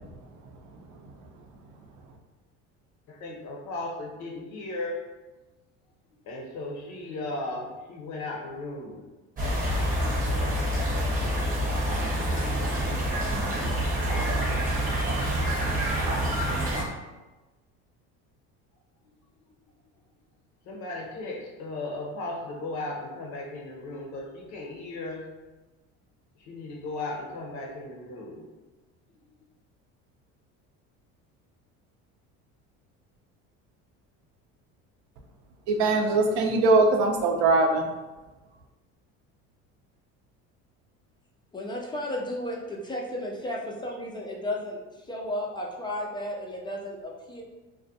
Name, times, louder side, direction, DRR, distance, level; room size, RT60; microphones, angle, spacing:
voice 1, 3.1-5.1 6.3-9.0 20.7-25.2 26.5-28.5, left 2 dB, 60° left, 1 dB, 0.7 m, -36 dB
sound 1, 9.4-16.8, equal, 25° right, 0.9 m, -27 dB
voice 2, 35.7-37.9, right 3 dB, 65° right, 3 dB, 0.5 m, -21 dB
voice 3, 41.5-44.8 45.1-47.4, left 1 dB, 15° left, -2 dB, 0.3 m, -33 dB
2.4 x 2.1 x 2.6 m, 1.1 s
supercardioid pair, 95°, 34 cm